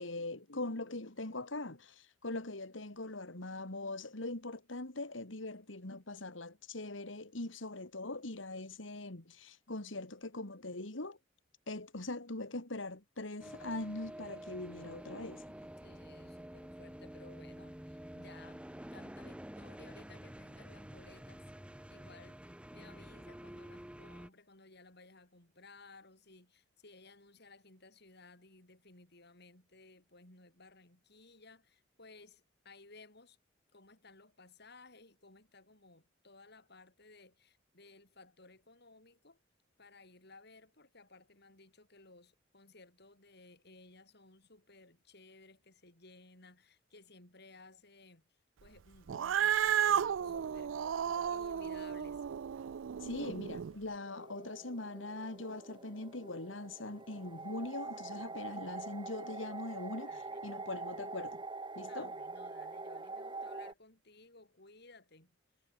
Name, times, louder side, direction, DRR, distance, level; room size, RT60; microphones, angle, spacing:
voice 1, 0.0-11.2 11.7-15.5 49.9-50.4 50.8-51.4 53.0-61.4 61.8-62.1, left 2 dB, 80° left, 2.7 m, -42 dB
sound 1, 13.4-24.3, equal, 5° right, 1.1 m, -49 dB
voice 2, 15.8-18.6 18.9-21.4 21.9-33.4 33.7-39.4 39.8-48.2 48.6-50.8 51.3-52.2 60.1-60.4 61.9-65.4, left 3 dB, 60° left, 6.8 m, -58 dB
Cat, 49.1-53.7, right 9 dB, 75° right, 0.4 m, -33 dB
sound 2, 53.9-63.7, right 3 dB, 25° right, 3.5 m, -45 dB
head